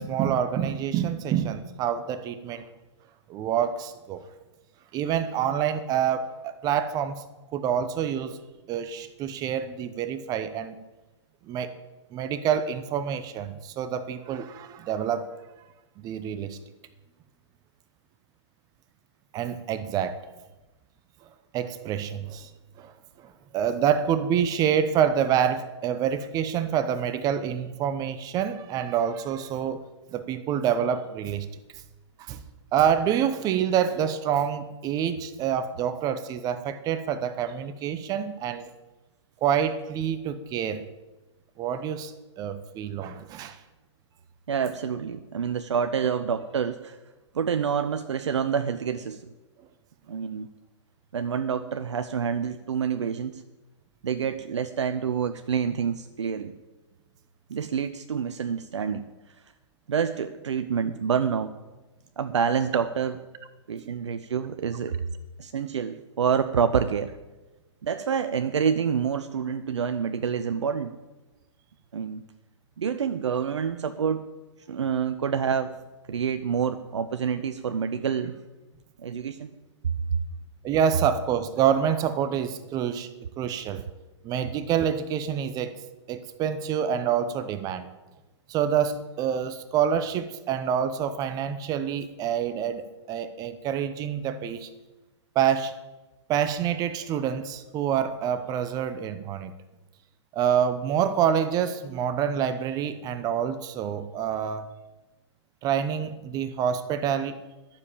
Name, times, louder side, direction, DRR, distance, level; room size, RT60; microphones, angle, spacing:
voice 1, 0.0-2.7 3.3-4.2 4.9-7.2 7.5-8.3 8.7-10.7 11.4-11.7 12.1-15.3 16.0-16.6 19.3-20.2 21.5-22.5 22.8-22.9 23.2-29.8 30.1-31.5 32.2-32.4 32.7-38.6 39.4-40.8 41.6-43.6 63.7-63.9 80.6-83.1 83.4-83.8 84.2-85.7 86.1-87.9 88.5-94.7 95.3-95.7 96.3-99.5 100.3-104.6 105.6-107.4, right 8 dB, 25° right, 12 dB, 0.9 m, -27 dB
voice 2, 44.5-47.0 47.3-49.2 50.1-50.5 51.1-53.4 54.0-56.5 57.5-59.0 59.9-61.5 62.2-63.2 63.7-65.0 65.4-67.1 67.8-70.9 71.9-72.2 72.8-74.2 74.7-75.8 76.1-78.4 79.0-79.5 80.1-80.2, right 7 dB, 70° right, 10 dB, 0.8 m, -27 dB
12.0 x 7.3 x 8.4 m, 1.1 s
hypercardioid pair, 125°, 16 cm